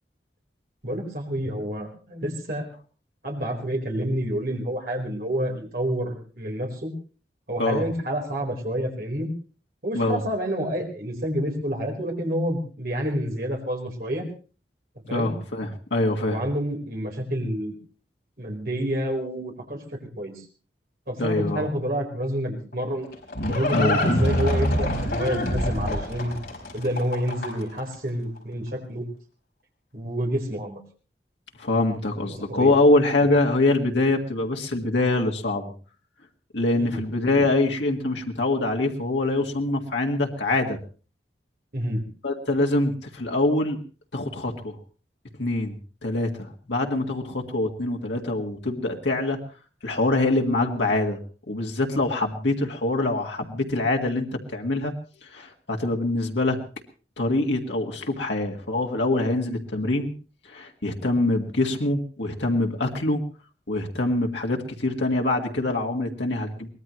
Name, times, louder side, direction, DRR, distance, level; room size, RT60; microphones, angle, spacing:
voice 1, 0.8-2.6 3.2-6.9 7.5-9.3 9.8-14.2 15.1-15.3 16.2-17.7 18.4-20.4 21.1-23.1 23.5-26.4 26.7-29.1 29.9-30.8 32.5-32.7 36.8-37.0 41.7-42.0, equal, 55° right, 1 dB, 4.4 m, -28 dB
voice 2, 15.1-16.4 21.2-21.7 23.7-24.0 31.6-35.7 36.5-40.8 42.2-43.8 44.1-44.8 45.4-49.4 49.8-51.2 51.5-54.9 55.2-56.6 57.2-60.1 60.5-63.2 63.7-66.7, left 2 dB, 85° left, 2 dB, 1.8 m, -24 dB
Livestock farm animals working animals, 22.7-27.8, left 1 dB, 60° left, 4.9 m, -25 dB
23.5 x 19.0 x 3.1 m, 0.37 s
head